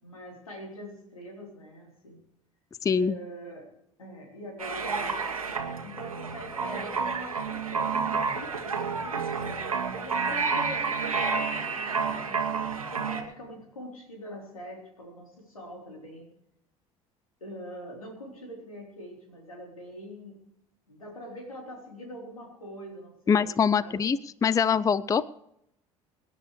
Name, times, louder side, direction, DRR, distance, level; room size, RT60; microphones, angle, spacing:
voice 1, 0.0-2.2 3.0-3.7 4.0-12.5 12.9-16.3 17.4-20.4 20.9-24.1, equal, 85° left, 1 dB, 3.7 m, -43 dB
voice 2, 2.8-3.2 23.3-25.3, left 6 dB, 20° left, 19 dB, 0.5 m, -24 dB
sound 1, 4.6-13.2, right 5 dB, 85° right, 1.4 m, -30 dB
25.0 x 10.5 x 3.2 m, 0.77 s
figure-of-eight pair, 65°, 17 cm